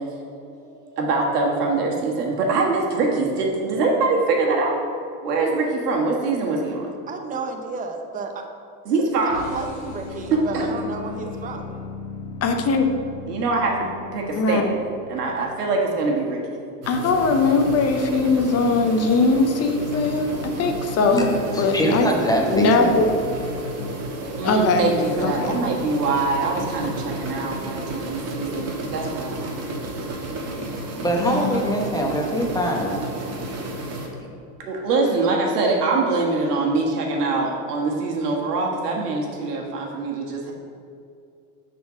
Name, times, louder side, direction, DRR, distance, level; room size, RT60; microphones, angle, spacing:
voice 1, 0.8-4.7 5.2-6.8 8.8-9.4 10.3-10.6 13.2-13.7 14.1-14.8 15.1-16.4 24.2-29.5 34.6-40.5, right 3 dB, 90° right, -1 dB, 1.6 m, -23 dB
voice 2, 7.1-8.4 9.2-11.8, right 4 dB, 20° right, 4 dB, 0.7 m, -32 dB
sound 1, 9.2-15.7, left 4 dB, 85° left, 1.5 m, -37 dB
voice 3, 12.4-12.9 14.4-14.7 16.9-22.1 22.5-23.1 24.4-24.9 25.2-25.6 31.2-31.7, left 3 dB, 35° left, 5 dB, 0.8 m, -20 dB
sound 2, 16.8-34.1, right 1 dB, 35° right, 1.5 m, -32 dB
voice 4, 21.5-23.0 23.5-23.6 30.5-33.0, right 1 dB, 10° left, 0 dB, 1.0 m, -23 dB
6.8 x 4.3 x 6.2 m, 2.5 s
supercardioid pair, 110°, 45 cm